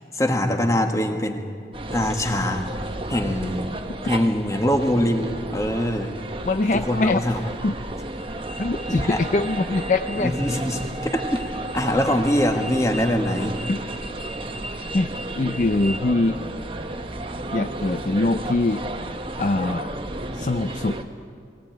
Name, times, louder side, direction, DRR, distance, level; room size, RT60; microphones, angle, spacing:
voice 1, 0.1-1.5 1.9-2.7 3.1-3.6 4.0-6.1 6.7-7.4 8.9-9.2 10.2-13.6, equal, 20° left, 4 dB, 1.7 m, -23 dB
sound 1, 1.7-21.0, right 1 dB, 30° right, 1.2 m, -32 dB
voice 2, 6.5-7.2 7.6-7.7 8.6-10.3 13.7-13.8 14.9-15.1 15.4-16.4 17.5-18.8 19.4-19.9 20.3-21.0, left 2 dB, 45° left, 8 dB, 0.5 m, -23 dB
21.0 x 18.0 x 9.3 m, 2.3 s
head